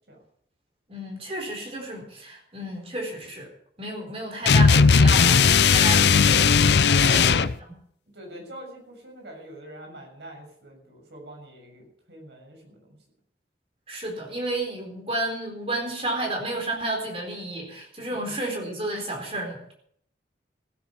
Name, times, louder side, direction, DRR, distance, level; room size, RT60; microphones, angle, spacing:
voice 1, 0.9-3.5 3.8-6.4 6.9-7.4 13.9-19.7, right 1 dB, 35° right, 1 dB, 4.2 m, -31 dB
sound 1, 4.5-7.5, left 5 dB, 80° left, 0.6 m, -17 dB
voice 2, 6.9-7.5 8.1-12.9 18.3-18.4, right 1 dB, 85° right, 1 dB, 6.9 m, -43 dB
16.0 x 9.8 x 7.3 m, 0.66 s
head